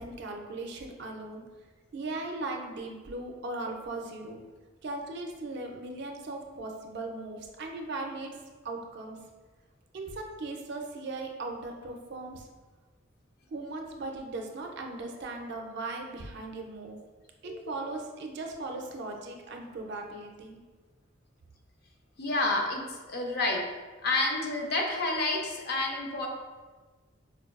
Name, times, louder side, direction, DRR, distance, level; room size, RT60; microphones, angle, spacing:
voice 1, 0.0-1.4 1.9-4.4 4.8-8.3 8.6-9.2 9.9-12.5 13.5-17.0 17.4-20.6, right 2 dB, 60° right, 2 dB, 0.4 m, -38 dB
voice 2, 22.2-22.8 23.1-23.6 24.0-26.3, left 2 dB, 55° left, 1 dB, 0.5 m, -29 dB
4.5 x 2.2 x 2.3 m, 1.3 s
head